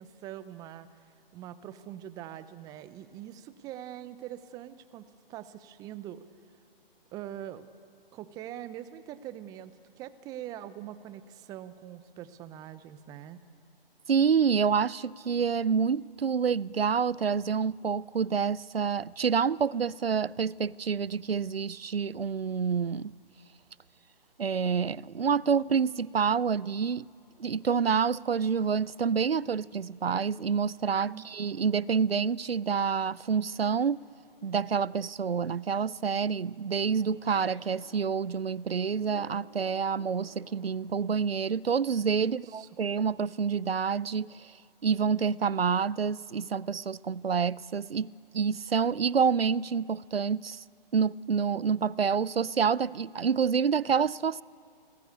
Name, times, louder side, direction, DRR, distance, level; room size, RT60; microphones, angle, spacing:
voice 1, 0.0-6.2 7.1-7.7 8.1-13.4 31.1-31.2 42.2-42.7, right 11 dB, 10° right, 0.7 m, -43 dB
voice 2, 14.1-23.1 24.4-27.1 27.4-34.0 34.4-44.5 44.8-50.6 50.9-54.4, right 6 dB, 85° right, 0.6 m, -28 dB
sound 1, 27.2-41.3, left 5 dB, 45° left, 7.6 m, -58 dB
29.0 x 20.0 x 8.4 m
figure-of-eight pair, 140°, 29 cm